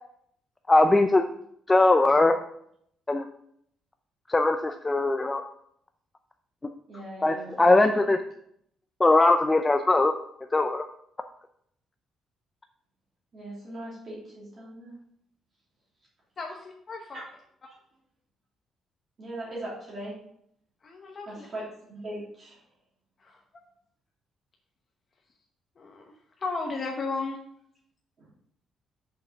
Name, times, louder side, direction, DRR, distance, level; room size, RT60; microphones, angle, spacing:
voice 1, 0.7-1.2 1.7-2.4 3.1-3.3 4.3-5.4 7.2-8.2 9.0-10.2 10.5-10.9, left 2 dB, 15° left, 6 dB, 0.4 m, -20 dB
voice 2, 6.9-8.0 13.3-14.9 17.1-17.2 17.7-17.8 19.2-20.2 21.3-22.6 28.2-28.3, right 1 dB, 35° right, -7 dB, 3.0 m, -40 dB
voice 3, 16.4-17.2 20.8-21.5 23.2-23.4 25.8-27.4, left 3 dB, 30° left, 0 dB, 1.0 m, -35 dB
6.8 x 5.8 x 6.3 m, 0.70 s
cardioid pair, 165°, 0 cm